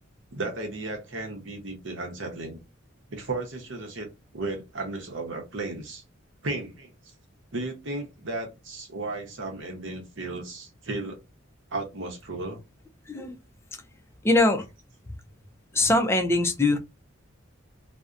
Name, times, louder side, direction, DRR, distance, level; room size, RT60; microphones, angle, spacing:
voice 1, 0.3-2.6 3.1-6.0 6.4-6.9 7.5-11.2 11.7-12.6, right 2 dB, 65° right, 0.8 m, -34 dB
voice 2, 13.1-13.4 14.2-14.7 15.1-15.2 15.7-16.8, left 2 dB, 15° left, 0.4 m, -22 dB
2.6 x 2.1 x 2.4 m
head